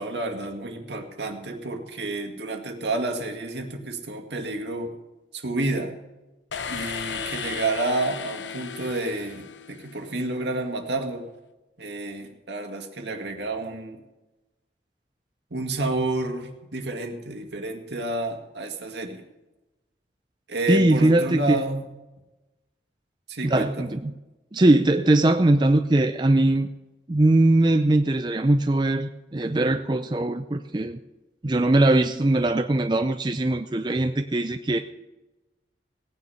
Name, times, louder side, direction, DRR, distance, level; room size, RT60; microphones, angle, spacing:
voice 1, 0.0-4.9 5.3-5.9 6.7-11.2 11.8-14.0 15.5-19.2 20.5-21.9 23.3-23.9, right 2 dB, 75° right, 4 dB, 2.1 m, -30 dB
sound 1, 6.5-10.3, left 6 dB, 85° left, 0.8 m, -35 dB
voice 2, 20.7-21.6 23.4-24.1 24.5-26.7 27.1-31.0 31.4-34.8, right 2 dB, 25° right, 7 dB, 0.5 m, -21 dB
17.5 x 9.6 x 5.7 m, 1.0 s
head